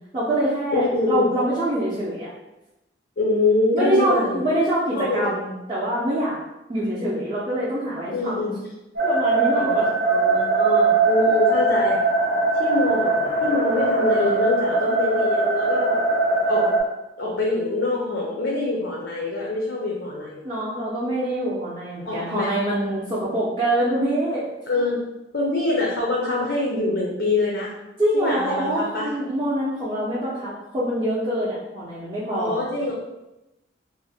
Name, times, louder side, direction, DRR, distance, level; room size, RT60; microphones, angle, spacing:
voice 1, 0.1-2.3 3.7-6.4 6.7-8.5 9.0-9.9 20.4-24.4 28.0-32.6, right 1 dB, 25° right, -9 dB, 0.5 m, -25 dB
voice 2, 0.7-1.3 3.2-4.5 4.9-5.3 8.1-8.5 9.5-12.0 12.6-16.0 16.5-16.7 17.2-20.4 22.0-22.5 24.7-25.0 25.3-27.7 28.1-29.1 32.3-32.9, left 2 dB, 70° left, -3 dB, 0.5 m, -24 dB
sound 1, 9.0-16.8, right 3 dB, 75° right, 0.7 m, -21 dB
2.6 x 2.0 x 3.4 m, 0.95 s
head